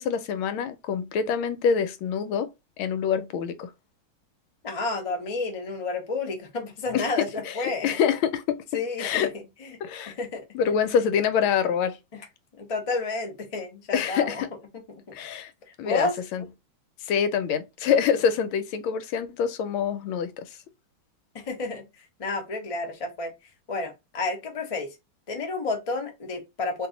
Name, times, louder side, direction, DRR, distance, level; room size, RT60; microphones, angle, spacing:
voice 1, 0.0-2.5 2.8-3.7 6.9-8.6 9.0-9.3 9.8-10.1 10.5-12.0 13.9-14.5 15.1-15.5 15.8-16.4 17.0-20.5, left 7 dB, 85° left, 1.4 m, -26 dB
voice 2, 4.6-8.0 8.7-9.3 9.6-9.7 10.1-10.4 12.1-12.2 12.6-14.4 14.9-15.2 15.8-16.1 21.3-21.9 22.2-23.3 23.7-24.9 25.3-26.9, left 3 dB, 65° left, 0.3 m, -30 dB
2.9 x 2.7 x 3.8 m
omnidirectional pair, 2.2 m